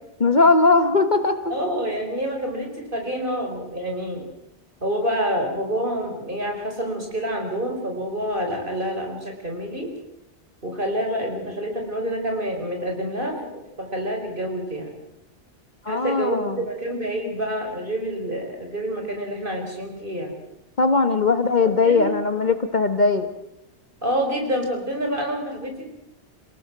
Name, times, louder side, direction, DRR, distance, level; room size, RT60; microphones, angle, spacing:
voice 1, 0.2-1.5 15.8-16.6 20.8-23.3, left 3 dB, 40° left, 8 dB, 1.3 m, -19 dB
voice 2, 1.5-4.2 4.8-9.9 10.6-13.4 13.8-14.9 15.9-20.3 21.6-22.2 24.0-25.9, equal, 45° right, 2 dB, 5.0 m, -27 dB
28.0 x 17.5 x 6.1 m, 0.88 s
omnidirectional pair, 1.2 m